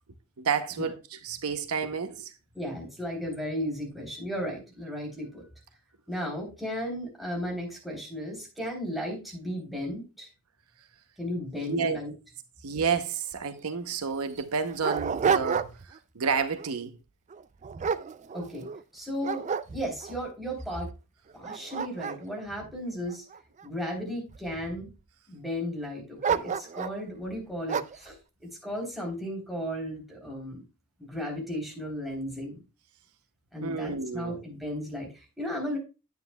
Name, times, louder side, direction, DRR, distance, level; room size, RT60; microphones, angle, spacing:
voice 1, 0.4-0.9 1.2-2.3 11.7-12.0 12.6-15.7 16.2-16.9 33.6-34.4, right 6 dB, 90° right, 0.8 m, -30 dB
voice 2, 2.5-5.4 6.1-10.3 11.2-12.1 18.3-18.7 18.9-19.5 19.7-20.9 21.3-23.2 23.6-24.9 25.3-28.2 28.4-30.6 31.0-32.6 33.5-35.8, equal, ahead, 3.5 m, -35 dB
Dog, 13.3-13.4 13.7-13.8 14.4-16.0 16.4-16.7 17.3-18.8 19.2-20.2 20.7-20.8 21.3-23.6 24.3-24.9 26.2-27.0 27.7-28.1, right 6 dB, 35° right, 0.4 m, -30 dB
9.4 x 9.3 x 2.3 m
head